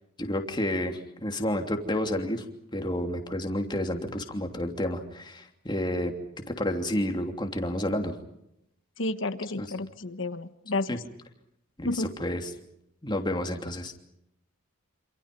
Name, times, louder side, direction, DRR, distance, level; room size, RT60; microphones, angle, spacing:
voice 1, 0.2-2.4 2.7-6.1 6.5-8.1 9.6-9.7 10.9-11.0 11.8-12.5 13.0-13.9, left 1 dB, 20° left, 4 dB, 3.0 m, -30 dB
voice 2, 9.0-11.0 11.8-12.1, left 2 dB, 60° left, 11 dB, 1.4 m, -31 dB
28.0 x 27.5 x 5.4 m, 0.78 s
head